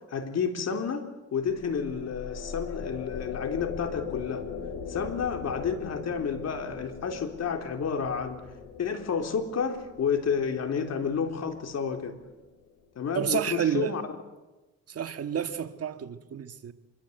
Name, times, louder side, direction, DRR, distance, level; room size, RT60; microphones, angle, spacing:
voice 1, 0.1-1.0 1.3-4.4 4.9-8.4 8.8-12.1 13.0-14.0, left 6 dB, 55° left, 3.7 m, -30 dB
sound 1, 1.4-12.8, left 6 dB, 75° left, 4.1 m, -40 dB
voice 2, 13.1-13.9 14.9-16.7, right 8 dB, 50° right, 1.8 m, -30 dB
25.0 x 23.0 x 8.2 m
cardioid pair, 90°, 30 cm